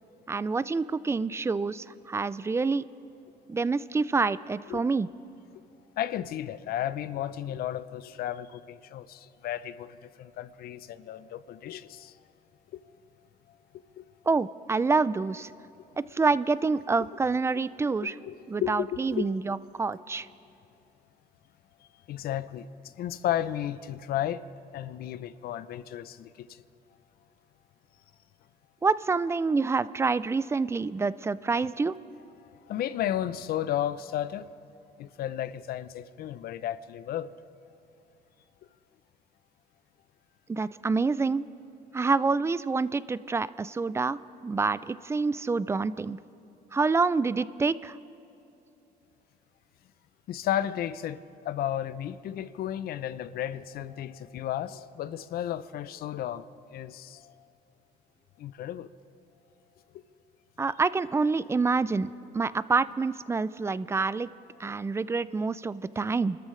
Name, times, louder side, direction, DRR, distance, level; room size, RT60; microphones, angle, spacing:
voice 1, 0.3-2.8 3.5-5.1 14.3-15.5 16.0-18.1 18.5-20.3 28.8-32.0 40.5-41.4 41.9-46.2 46.7-48.0 60.6-64.3 64.6-66.4, right 4 dB, 15° right, 0.3 m, -27 dB
voice 2, 6.0-12.2 12.7-12.8 14.0-14.1 18.0-19.3 22.1-24.4 24.7-26.6 32.4-34.5 35.0-37.3 50.3-57.3 58.4-58.9 59.9-60.0, left 11 dB, 65° left, 0.6 m, -33 dB
28.5 x 13.5 x 3.3 m
cardioid pair, 110°, 17 cm